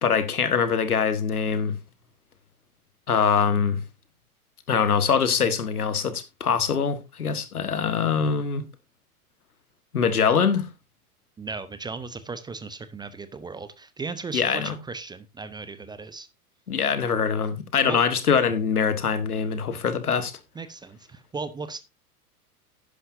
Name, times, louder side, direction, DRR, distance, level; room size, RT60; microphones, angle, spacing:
voice 1, 0.0-1.7 3.1-3.8 4.7-8.6 9.9-10.7 14.3-14.7 16.7-20.3, left 6 dB, 80° left, 1.5 m, -23 dB
voice 2, 11.4-16.3 17.8-18.0 20.5-21.8, right 4 dB, 10° right, 0.6 m, -36 dB
11.0 x 10.0 x 2.6 m
figure-of-eight pair, 95°, 45 cm